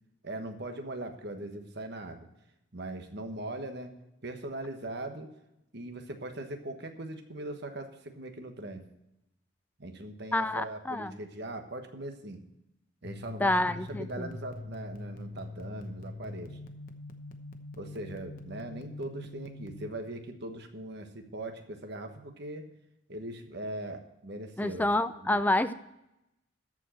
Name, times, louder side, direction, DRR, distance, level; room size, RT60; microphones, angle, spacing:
voice 1, 0.2-2.3 2.7-3.9 4.2-5.3 5.7-8.8 9.8-12.4 13.0-16.6 17.8-22.6 23.1-25.4, right 1 dB, 55° right, 5 dB, 1.3 m, -40 dB
voice 2, 10.3-11.2 13.4-14.3 24.6-25.7, left 1 dB, 10° left, 12 dB, 0.4 m, -28 dB
sound 1, 13.0-19.9, left 2 dB, 45° left, 0.9 m, -43 dB
13.5 x 4.9 x 7.6 m, 0.87 s
head